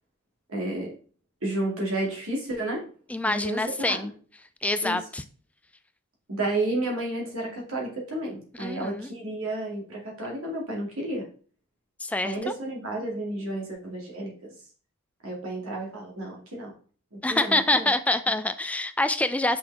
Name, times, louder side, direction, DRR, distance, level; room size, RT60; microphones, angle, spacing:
voice 1, 0.5-0.9 1.4-2.9 3.2-4.1 4.8-5.0 6.3-11.2 12.2-14.3 15.2-16.7 17.1-17.9, right 2 dB, 65° right, -2 dB, 2.3 m, -31 dB
voice 2, 3.1-4.1 4.6-5.2 8.6-9.1 12.0-12.3 17.2-19.6, left 2 dB, 5° left, 11 dB, 0.3 m, -26 dB
5.9 x 5.5 x 3.3 m, 0.41 s
head